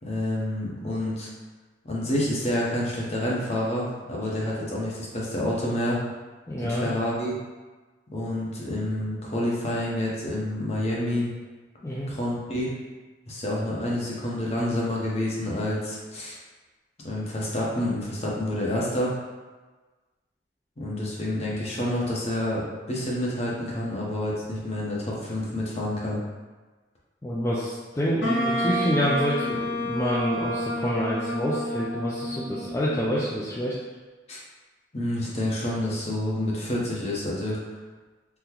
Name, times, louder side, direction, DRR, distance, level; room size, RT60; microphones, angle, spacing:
voice 1, 0.0-1.3 1.8-6.0 6.7-7.4 8.1-11.3 12.1-12.7 13.3-16.4 17.0-19.1 20.8-26.2 34.3-34.4 34.9-37.6, left 1 dB, 35° left, -5 dB, 0.7 m, -28 dB
voice 2, 6.5-6.9 11.8-12.1 27.2-33.8, equal, 15° left, -7 dB, 0.3 m, -27 dB
Wind instrument woodwind instrument, 28.2-33.2, equal, 80° left, 0.7 m, -29 dB
3.7 x 2.1 x 2.9 m, 1.3 s
head